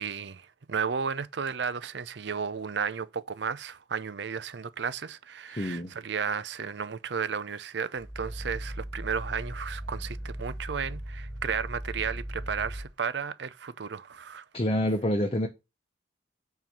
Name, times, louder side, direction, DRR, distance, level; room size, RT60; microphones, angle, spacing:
voice 1, 0.0-14.4, right 6 dB, 65° right, 0.5 m, -33 dB
voice 2, 5.5-5.9 14.5-15.5, left 1 dB, 30° left, 0.8 m, -27 dB
Growling, 8.0-12.9, equal, ahead, 1.7 m, -38 dB
5.7 x 4.6 x 5.1 m
head